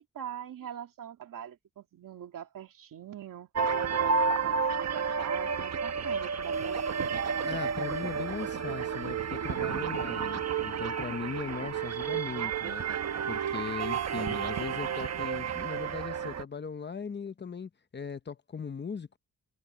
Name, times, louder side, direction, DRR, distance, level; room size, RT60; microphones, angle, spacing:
voice 1, 0.0-3.7 4.0-7.1 12.3-13.3, right 9 dB, 75° right, 2.5 m, -43 dB
sound 1, 3.5-16.4, right 6 dB, 50° right, 1.2 m, -31 dB
voice 2, 7.4-12.8 13.3-19.2, left 5 dB, 35° left, 0.9 m, -39 dB
wide cardioid pair, 125°, 32 cm